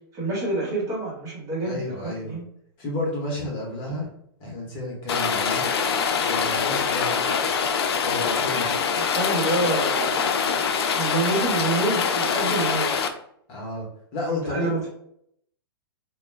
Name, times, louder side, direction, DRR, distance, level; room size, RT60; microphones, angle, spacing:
voice 1, 0.1-2.4 8.9-10.6 10.9-12.9 14.3-14.9, right 2 dB, 25° right, -4 dB, 1.2 m, -27 dB
voice 2, 1.6-2.4 2.8-4.1 4.4-5.7 6.2-7.3 8.0-8.8 13.5-14.9, left 1 dB, 35° left, -3 dB, 0.9 m, -31 dB
Rain, 5.1-13.1, left 6 dB, 85° left, 0.4 m, -24 dB
2.2 x 2.1 x 3.2 m, 0.70 s
hypercardioid pair, 140°, 13 cm